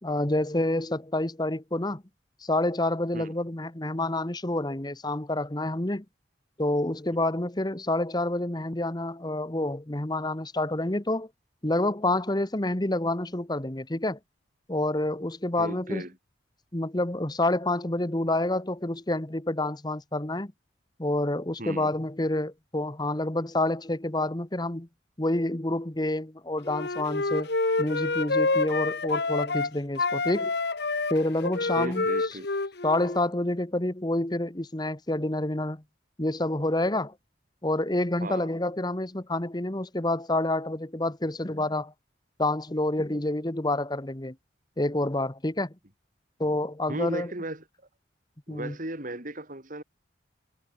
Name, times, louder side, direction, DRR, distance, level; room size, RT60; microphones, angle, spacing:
voice 1, 0.0-2.0 2.4-6.0 6.6-11.3 11.6-14.2 14.7-16.0 16.7-20.5 21.0-24.9 25.2-30.5 31.1-32.1 32.8-35.8 36.2-37.1 37.6-41.9 42.4-44.3 44.8-45.7 46.4-47.3 48.5-48.7, left 1 dB, 20° left, 1.2 m, -28 dB
voice 2, 15.6-16.1 21.6-21.9 31.8-32.5 38.2-38.5 46.9-47.6 48.5-49.8, right 1 dB, 45° right, 4.1 m, -36 dB
Wind instrument woodwind instrument, 26.7-29.7 30.0-33.3, left 3 dB, 60° left, 1.3 m, -28 dB
head